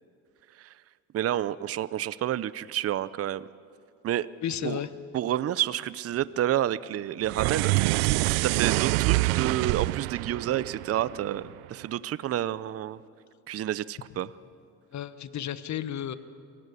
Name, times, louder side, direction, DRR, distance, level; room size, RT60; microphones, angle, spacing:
voice 1, 1.1-3.5 4.0-4.3 4.6-4.8 5.1-8.0 8.3-13.0 13.5-14.3, right 12 dB, 40° right, 18 dB, 0.6 m, -29 dB
voice 2, 4.4-4.9 14.9-16.2, left 10 dB, 45° left, 14 dB, 1.2 m, -32 dB
sound 1, 7.2-11.7, right 22 dB, 75° right, 0.5 m, -26 dB
23.0 x 15.5 x 9.9 m, 2.4 s
supercardioid pair, 70°, 38 cm